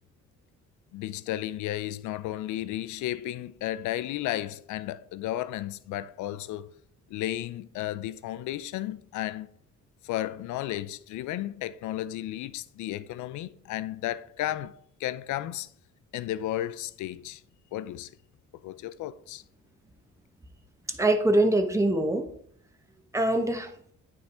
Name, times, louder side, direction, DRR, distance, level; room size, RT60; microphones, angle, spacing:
voice 1, 0.9-6.7 7.1-9.5 10.0-14.7 15.0-15.7 16.1-17.4 17.7-18.1 18.6-19.4, left 13 dB, 75° left, 0.5 m, -33 dB
voice 2, 20.9-22.3 23.1-23.7, right 1 dB, 10° right, 1.1 m, -23 dB
9.4 x 3.6 x 4.3 m
cardioid pair, 90°, 30 cm